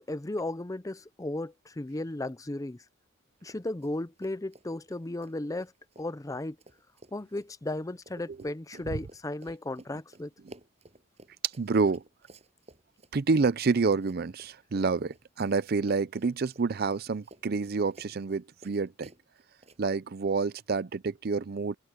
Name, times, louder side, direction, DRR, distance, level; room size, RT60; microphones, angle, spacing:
voice 1, 0.0-2.8 3.4-5.7 6.0-6.6 7.1-10.3, left 2 dB, 15° left, 0.5 m, -35 dB
Run, 3.4-3.9 4.2-15.6 15.8-19.8, right 1 dB, 35° right, 7.1 m, -54 dB
voice 2, 11.4-12.0 13.1-19.1 19.8-21.7, right 4 dB, 50° right, 0.5 m, -28 dB
head